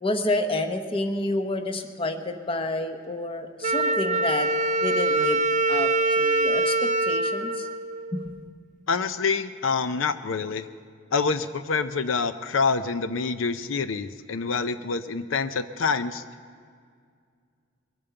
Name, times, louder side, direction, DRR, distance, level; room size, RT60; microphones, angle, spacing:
voice 1, 0.0-4.5 4.8-5.4 5.7-7.7 8.1-8.3, left 1 dB, 30° left, 6 dB, 1.0 m, -29 dB
Wind instrument woodwind instrument, 3.6-8.4, right 2 dB, 40° right, 0.5 m, -24 dB
voice 2, 8.9-10.7 11.1-16.2, left 4 dB, 90° left, 11 dB, 0.6 m, -26 dB
21.5 x 8.8 x 6.8 m, 2.1 s
head